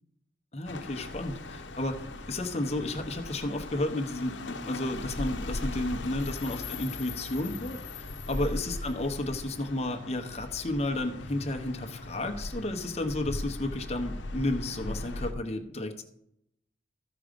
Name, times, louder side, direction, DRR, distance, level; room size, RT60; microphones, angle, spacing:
voice 1, 0.5-16.0, left 1 dB, 35° left, 5 dB, 0.9 m, -32 dB
sound 1, 0.6-15.3, left 2 dB, 80° left, 0.9 m, -39 dB
14.0 x 5.0 x 5.2 m, 0.78 s
head